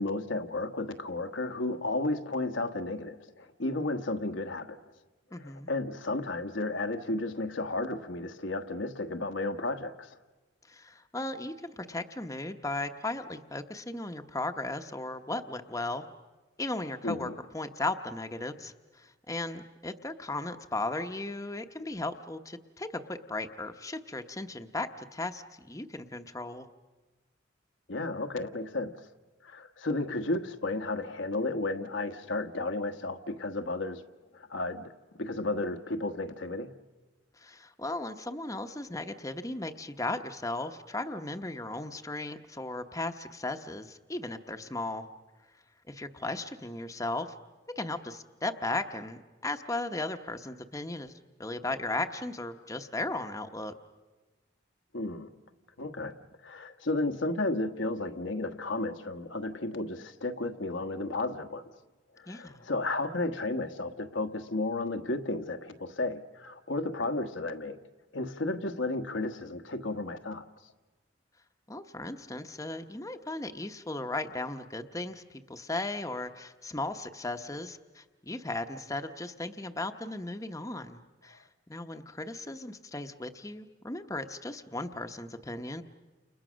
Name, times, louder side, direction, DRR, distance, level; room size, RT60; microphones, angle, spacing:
voice 1, 0.0-4.8 5.4-10.2 17.0-17.4 27.9-28.9 29.4-34.0 34.3-36.7 54.9-55.3 55.8-56.1 56.4-61.6 62.2-67.8 68.1-70.4, left 2 dB, 80° left, 1.4 m, -33 dB
voice 2, 5.3-5.7 10.7-16.0 16.6-26.7 37.4-45.0 45.9-47.3 47.8-53.7 62.3-62.6 71.7-85.8, left 2 dB, 15° left, 0.9 m, -36 dB
30.0 x 29.0 x 6.3 m
head